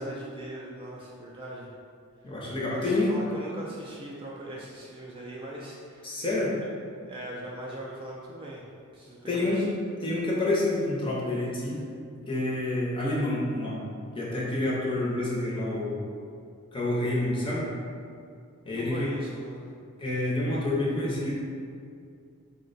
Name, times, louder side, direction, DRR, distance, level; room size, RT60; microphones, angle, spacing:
voice 1, 0.0-1.7 2.3-2.4 2.7-6.2 7.1-8.7 8.9-9.7 18.7-19.7, right 1 dB, 25° right, -4 dB, 0.3 m, -40 dB
voice 2, 2.2-3.1 6.0-6.5 9.3-9.6 10.0-11.8 12.3-13.8 14.1-16.0 16.7-17.7 18.6-19.1 20.0-21.4, left 2 dB, 25° left, -5 dB, 0.6 m, -28 dB
3.9 x 2.1 x 3.9 m, 2.4 s
head